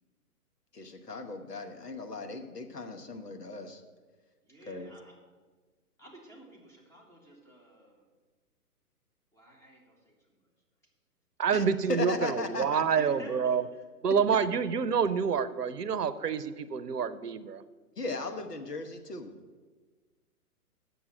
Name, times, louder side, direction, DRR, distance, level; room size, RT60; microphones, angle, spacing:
voice 1, 0.7-3.8 4.7-4.9 11.5-11.6 11.9-12.8 18.0-19.3, left 3 dB, 90° left, 6 dB, 1.4 m, -36 dB
voice 2, 4.4-5.1 6.0-8.0 9.3-10.1 12.8-13.8, right 2 dB, 5° left, -2 dB, 1.6 m, -51 dB
voice 3, 11.4-13.6 14.0-17.6, right 6 dB, 85° right, 15 dB, 0.8 m, -28 dB
8.8 x 6.9 x 6.3 m, 1.4 s
figure-of-eight pair, 130°, 46 cm